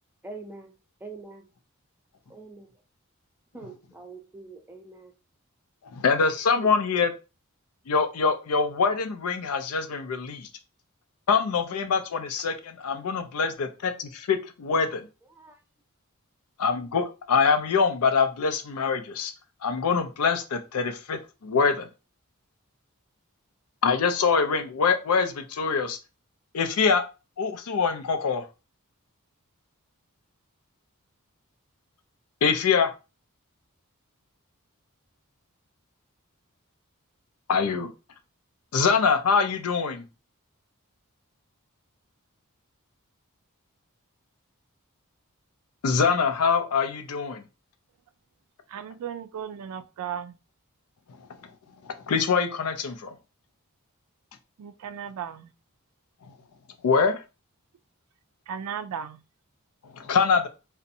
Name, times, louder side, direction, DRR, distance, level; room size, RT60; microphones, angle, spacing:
voice 1, 0.2-0.7 1.0-1.4 2.3-2.7 3.5-5.1 6.6-6.7 15.3-15.6, right 3 dB, 10° right, 0.4 m, -43 dB
voice 2, 5.9-7.1 7.9-10.5 11.3-15.1 16.6-19.3 19.6-21.9 23.8-26.0 26.5-27.0 27.4-28.4 32.4-32.9 37.5-37.9 38.7-40.0 45.8-47.4 51.8-53.1 56.2-56.3 56.8-57.2 59.9-60.5, left 5 dB, 85° left, 0.4 m, -24 dB
voice 3, 48.7-50.4 54.6-55.5 58.5-59.2, right 8 dB, 80° right, 0.3 m, -35 dB
2.6 x 2.1 x 2.6 m
head